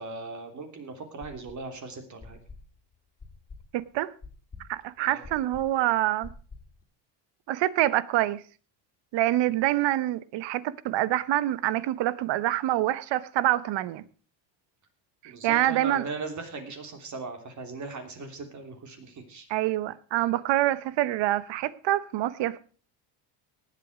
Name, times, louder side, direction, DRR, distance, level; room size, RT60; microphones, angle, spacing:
voice 1, 0.0-2.4 5.0-5.3 15.2-19.5, right 3 dB, 35° right, 3.3 m, -39 dB
sound 1, 1.2-1.8 2.2-6.8, left 3 dB, 15° left, 3.1 m, -47 dB
voice 2, 3.7-4.1 4.7-6.3 7.5-8.4 9.1-14.0 15.2-16.1 19.5-22.6, right 14 dB, 60° right, 1.0 m, -26 dB
18.0 x 8.5 x 4.9 m
cardioid pair, 135°, 48 cm